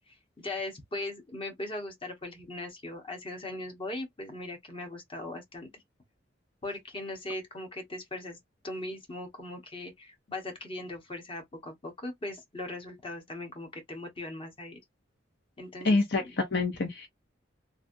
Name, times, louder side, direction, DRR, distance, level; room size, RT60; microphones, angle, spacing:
voice 1, 0.1-5.7 6.6-8.4 8.6-14.8 15.6-16.4, left 2 dB, 30° left, 1.2 m, -39 dB
voice 2, 15.8-17.1, left 3 dB, 60° left, 0.7 m, -27 dB
3.3 x 2.5 x 2.6 m
head